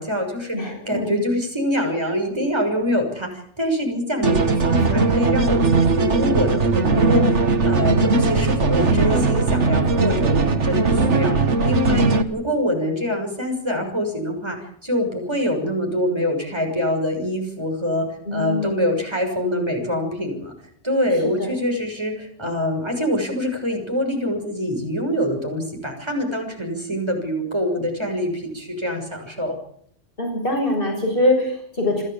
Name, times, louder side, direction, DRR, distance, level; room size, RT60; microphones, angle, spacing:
voice 1, 0.0-20.5 20.8-29.6, equal, 20° right, 3 dB, 6.6 m, -25 dB
voice 2, 0.5-1.2 18.3-18.9 21.4-21.5 30.2-32.0, left 1 dB, 50° left, 1 dB, 6.9 m, -23 dB
sound 1, 4.2-12.2, right 3 dB, 70° right, 2.0 m, -19 dB
29.0 x 14.5 x 8.6 m, 0.66 s
omnidirectional pair, 1.2 m